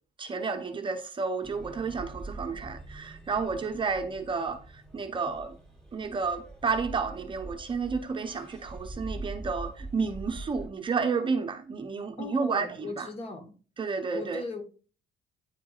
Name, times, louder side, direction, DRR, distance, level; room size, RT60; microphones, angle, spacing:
voice 1, 0.2-5.6 5.9-13.1 13.8-14.4, right 5 dB, 30° right, 0.7 m, -31 dB
sound 1, 1.4-10.7, right 2 dB, 5° left, 2.8 m, -43 dB
voice 2, 12.2-13.5 14.1-14.6, left 3 dB, 35° left, 1.4 m, -38 dB
9.5 x 4.5 x 2.4 m
cardioid pair, 110°, 17 cm